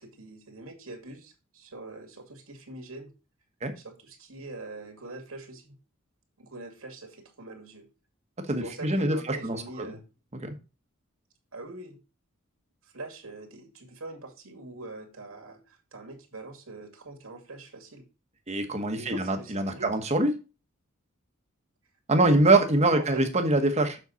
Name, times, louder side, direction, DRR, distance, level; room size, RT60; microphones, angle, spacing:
voice 1, 0.0-3.1 3.8-5.8 6.4-7.8 8.5-10.0 11.5-12.0 12.8-18.0 18.9-19.9 22.1-22.4 22.9-23.2, right 2 dB, 85° right, 3 dB, 2.3 m, -43 dB
voice 2, 8.5-9.6 10.4-10.5 18.5-20.3 22.1-24.0, right 2 dB, 30° right, 6 dB, 1.2 m, -24 dB
7.4 x 5.7 x 4.1 m, 0.31 s
head